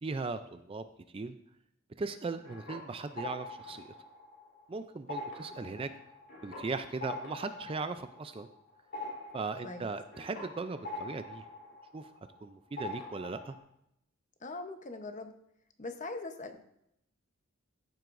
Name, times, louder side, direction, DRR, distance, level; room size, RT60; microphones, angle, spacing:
voice 1, 0.0-0.8 1.1-1.3 2.0-3.9 4.7-5.9 6.4-8.5 9.3-11.4 11.9-12.1 12.4-13.5, right 3 dB, 25° right, 10 dB, 0.4 m, -38 dB
sound 1, 2.2-4.7 5.0-12.4 12.8-13.6, left 2 dB, 60° left, 3.4 m, -44 dB
voice 2, 14.4-15.3 15.8-16.6, left 2 dB, 35° left, 7 dB, 0.9 m, -41 dB
14.0 x 7.7 x 2.6 m, 0.78 s
head